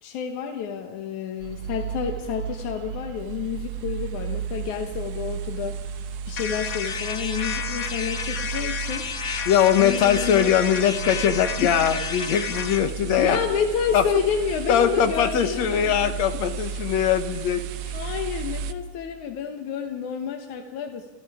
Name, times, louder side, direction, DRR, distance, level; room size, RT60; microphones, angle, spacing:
voice 1, 0.0-9.1 9.8-10.6 11.6-11.7 13.2-16.1 17.9-21.1, left 7 dB, 90° left, 5 dB, 2.7 m, -29 dB
sound 1, 1.4-18.7, right 7 dB, 70° right, 2.1 m, -34 dB
sound 2, 6.4-12.9, left 6 dB, 50° left, 1.1 m, -31 dB
voice 2, 9.5-13.4 13.9-14.0 14.7-17.9, left 9 dB, 70° left, 9 dB, 2.5 m, -21 dB
30.0 x 27.5 x 4.9 m, 1.3 s
omnidirectional pair, 3.3 m